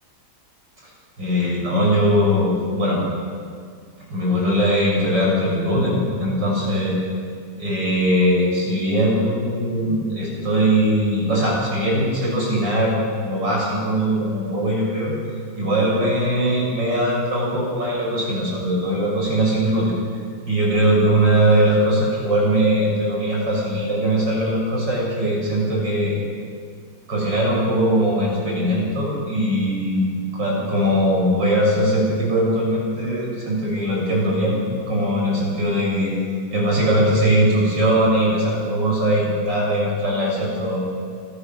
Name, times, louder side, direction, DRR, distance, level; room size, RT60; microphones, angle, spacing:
voice 1, 1.2-3.0 4.1-7.0 7.6-15.1 15.6-19.9 20.5-26.2 27.1-34.6 34.9-36.1 36.5-40.8, equal, 65° right, -4 dB, 7.2 m, -20 dB
26.5 x 16.5 x 6.8 m, 2.2 s
omnidirectional pair, 2.1 m